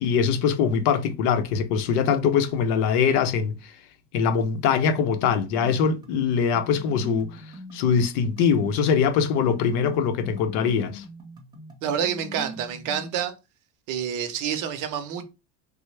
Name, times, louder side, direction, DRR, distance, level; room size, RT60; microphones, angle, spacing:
voice 1, 0.0-3.6 4.1-7.4 7.7-11.0, left 6 dB, 75° left, 0.6 m, -22 dB
sound 1, 5.2-13.2, equal, 10° right, 0.7 m, -42 dB
voice 2, 11.8-13.3 13.9-15.2, right 8 dB, 55° right, 0.6 m, -28 dB
3.3 x 2.0 x 3.1 m
cardioid pair, 145°, 39 cm